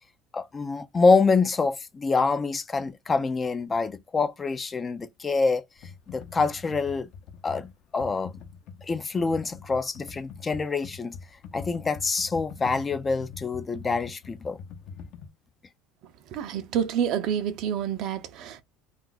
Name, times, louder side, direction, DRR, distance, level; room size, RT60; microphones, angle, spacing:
voice 1, 0.3-5.6 6.1-7.1 7.4-8.3 8.9-11.2 11.5-14.6, left 4 dB, 20° left, 0.4 m, -26 dB
Computer keyboard, 5.8-15.3, left 6 dB, 55° left, 0.7 m, -43 dB
voice 2, 16.3-18.6, right 8 dB, 55° right, 0.5 m, -28 dB
2.4 x 2.3 x 3.9 m
supercardioid pair, 125°, 0 cm